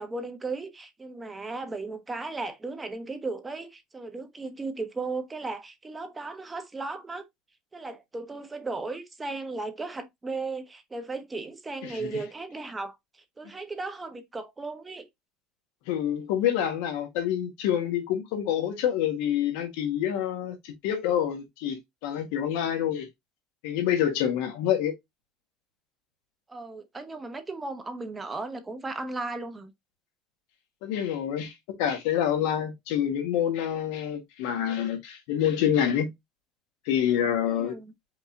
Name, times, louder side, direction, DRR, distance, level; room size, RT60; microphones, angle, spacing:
voice 1, 0.0-7.2 7.7-13.0 13.4-15.1 26.5-29.7 37.5-37.9, right 3 dB, 20° right, 1.1 m, -36 dB
voice 2, 11.8-12.2 15.9-23.1 23.6-24.9 30.8-31.5 31.8-36.1 36.8-37.8, left 10 dB, 85° left, 1.4 m, -27 dB
5.3 x 2.7 x 3.7 m
supercardioid pair, 105°, 0 cm